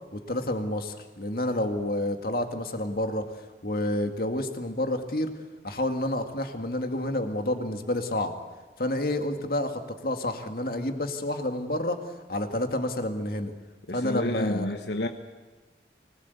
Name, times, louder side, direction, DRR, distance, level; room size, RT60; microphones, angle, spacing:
voice 1, 0.1-3.2 3.6-5.3 5.6-8.3 8.8-12.0 12.3-13.5 13.9-14.8, left 1 dB, 55° left, 6 dB, 2.1 m, -29 dB
voice 2, 13.9-15.1, left 1 dB, 85° left, 6 dB, 1.2 m, -30 dB
25.0 x 19.5 x 8.4 m, 1.3 s
head